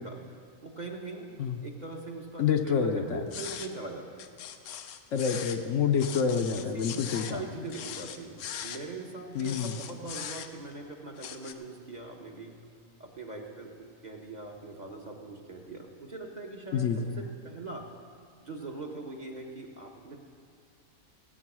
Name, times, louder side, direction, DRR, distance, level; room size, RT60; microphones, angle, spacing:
voice 1, 0.0-1.3 1.6-4.2 6.5-12.6 13.0-13.7 14.0-17.9 18.4-20.2, right 3 dB, 35° right, 1 dB, 1.0 m, -41 dB
voice 2, 2.4-3.2 5.1-7.4 9.3-9.7 16.7-17.1, left 6 dB, 65° left, 5 dB, 0.9 m, -28 dB
sound 1, 3.3-3.7 4.2-5.6 6.0-7.4 7.7-8.8 9.4-10.7 11.2-11.5, left 9 dB, 85° left, 1.2 m, -40 dB
16.0 x 8.0 x 6.1 m, 2.4 s
omnidirectional pair, 1.5 m